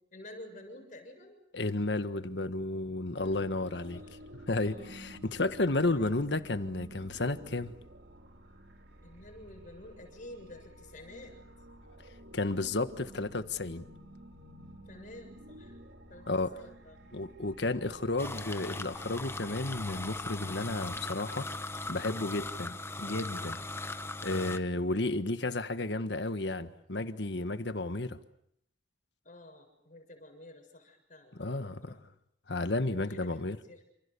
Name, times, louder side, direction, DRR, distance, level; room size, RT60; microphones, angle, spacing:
voice 1, 0.1-1.4 3.9-4.2 4.6-5.3 5.9-6.2 9.0-11.4 14.9-15.8 16.1-17.1 22.6-22.8 29.2-32.0 32.9-33.4 33.7-33.8, left 1 dB, 45° left, 7.0 m, -51 dB
voice 2, 1.5-4.0 4.5-7.7 12.3-13.8 16.3-16.5 17.1-21.5 21.9-23.6 24.2-28.2 31.3-32.0 32.5-33.6, left 2 dB, 70° left, 1.5 m, -32 dB
sound 1, 3.2-21.1, equal, 70° right, 4.3 m, -52 dB
sound 2, 18.2-24.6, left 2 dB, 15° left, 1.1 m, -39 dB
29.0 x 28.0 x 7.0 m
head